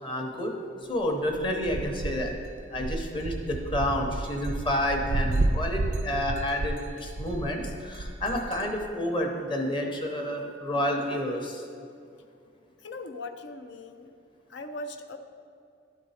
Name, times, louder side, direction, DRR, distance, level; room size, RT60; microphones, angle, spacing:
voice 1, 0.0-0.5 0.9-2.4 2.7-11.6, left 1 dB, 30° left, 2 dB, 0.9 m, -29 dB
sound 1, 1.3-8.8, right 2 dB, 40° right, 0.4 m, -31 dB
voice 2, 12.8-14.1 14.5-15.2, left 2 dB, 70° left, 7 dB, 0.5 m, -39 dB
11.5 x 4.5 x 4.2 m, 2.4 s
head